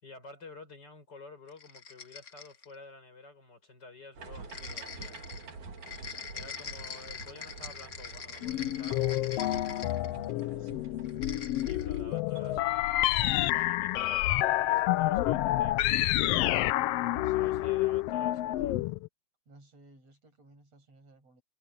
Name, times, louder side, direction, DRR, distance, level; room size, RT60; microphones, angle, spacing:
voice 1, 0.0-5.2 6.3-9.6 11.6-12.8 13.4-16.4 17.3-18.8, left 3 dB, 30° left, 5.8 m, -51 dB
sound 1, 1.5-2.7 4.5-10.4 11.0-11.9, left 6 dB, 60° left, 0.7 m, -44 dB
sound 2, 4.2-12.7, right 4 dB, 70° right, 4.5 m, -47 dB
sound 3, 8.4-19.1, left 15 dB, 85° left, 1.3 m, -28 dB
voice 2, 8.9-9.5 10.3-10.9 17.2-17.6 19.5-21.4, right 2 dB, 55° right, 8.0 m, -58 dB
omnidirectional pair, 3.5 m